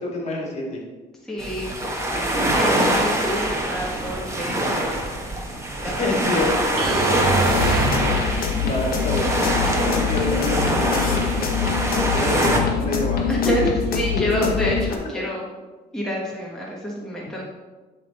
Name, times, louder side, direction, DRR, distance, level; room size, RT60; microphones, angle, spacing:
voice 1, 0.1-0.8 5.8-7.2 8.1-11.4 12.1-13.4 14.1-14.2, left 2 dB, 40° left, -2 dB, 2.2 m, -28 dB
voice 2, 1.3-1.7 2.1-4.9 5.8-6.1 7.3-7.7 8.9-9.2 11.9-12.5 13.3-15.5 15.9-17.4, equal, 5° left, -4 dB, 1.3 m, -28 dB
sound 1, 1.4-12.6, right 1 dB, 15° right, 1.3 m, -24 dB
sound 2, 6.8-8.5, right 4 dB, 60° right, 1.6 m, -25 dB
sound 3, 7.5-15.0, left 7 dB, 60° left, 1.1 m, -24 dB
11.0 x 3.7 x 4.2 m, 1.3 s
cardioid pair, 110°, 17 cm